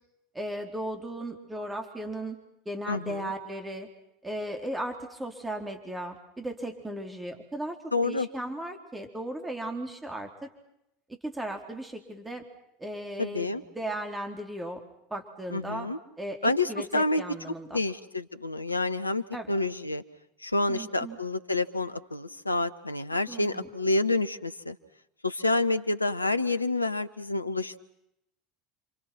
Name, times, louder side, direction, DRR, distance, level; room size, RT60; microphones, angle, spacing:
voice 1, 0.3-2.4 2.7-3.9 4.2-10.5 11.1-12.5 12.8-13.5 13.7-14.8 15.1-15.9 16.2-17.8 19.3-19.5 20.7-21.2 23.3-23.7, right 1 dB, 10° right, 4 dB, 3.9 m, -36 dB
voice 2, 2.9-3.3 7.9-8.3 13.2-13.6 15.5-16.0 16.4-17.2 17.7-20.0 20.4-24.8 25.2-27.8, left 2 dB, 90° left, 11 dB, 1.1 m, -28 dB
30.0 x 26.0 x 6.0 m, 0.82 s
figure-of-eight pair, 75°, 0 cm